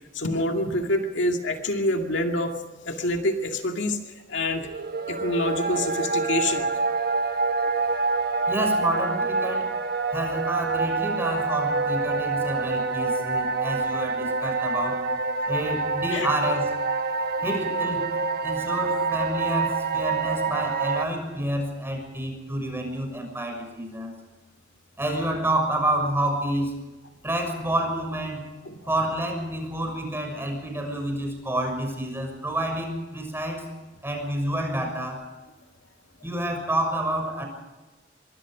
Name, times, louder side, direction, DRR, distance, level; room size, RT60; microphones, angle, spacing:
voice 1, 0.1-4.7 5.1-7.0 8.3-8.4 16.1-16.3 28.7-28.8, left 1 dB, 70° left, 4 dB, 2.3 m, -27 dB
sound 1, 4.6-21.1, right 4 dB, 55° right, 1.2 m, -26 dB
voice 2, 8.5-9.7 10.1-15.0 15.5-16.7 17.4-18.0 18.4-24.1 25.0-26.7 27.2-28.5 28.9-33.7 34.0-35.2 36.2-37.5, right 1 dB, 15° right, 3 dB, 6.4 m, -29 dB
25.0 x 23.0 x 5.1 m, 1.2 s
head